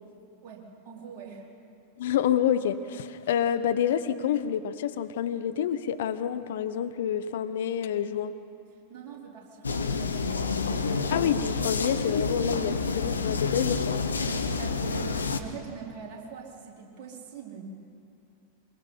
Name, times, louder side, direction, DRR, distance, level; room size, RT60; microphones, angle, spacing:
voice 1, 0.4-1.4 8.9-10.2 14.3-17.6, right 6 dB, 40° right, -1 dB, 4.0 m, -43 dB
voice 2, 2.0-8.3 11.1-14.0, left 9 dB, 55° left, 12 dB, 0.8 m, -28 dB
sound 1, 9.6-15.4, left 4 dB, 75° left, 1.1 m, -28 dB
23.5 x 22.0 x 5.6 m, 2.5 s
figure-of-eight pair, 90°, 0 cm